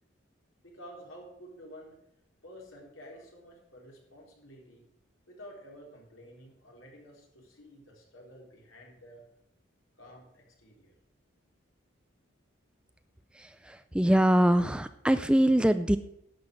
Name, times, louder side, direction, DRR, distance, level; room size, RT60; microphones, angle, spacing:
voice 1, 0.6-2.0 2.4-4.8 5.3-9.2 10.0-10.9, equal, 85° left, -1 dB, 3.9 m, -50 dB
voice 2, 13.3-16.0, right 1 dB, 5° right, 11 dB, 0.3 m, -24 dB
11.5 x 6.2 x 7.7 m, 0.78 s
head